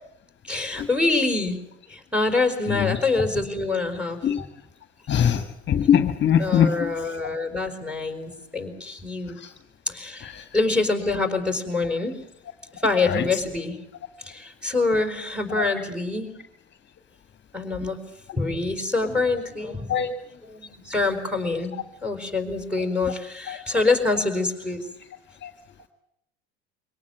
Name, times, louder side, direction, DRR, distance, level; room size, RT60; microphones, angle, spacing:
voice 1, 0.5-1.6 1.9-4.2 6.4-9.4 9.9-12.2 12.8-13.8 14.2-16.3 17.5-18.0 18.3-19.9 20.5-21.7 22.0-24.9, left 3 dB, 5° right, 5 dB, 5.0 m, -25 dB
voice 2, 2.7-3.0 4.2-4.5 5.1-7.2 9.4-9.5 10.2-10.5 13.0-13.4 15.6-15.7 19.9-20.1 23.5-23.6 25.4-25.5, left 8 dB, 35° left, 8 dB, 1.8 m, -23 dB
24.0 x 18.0 x 9.4 m, 0.79 s
hypercardioid pair, 90°, 32 cm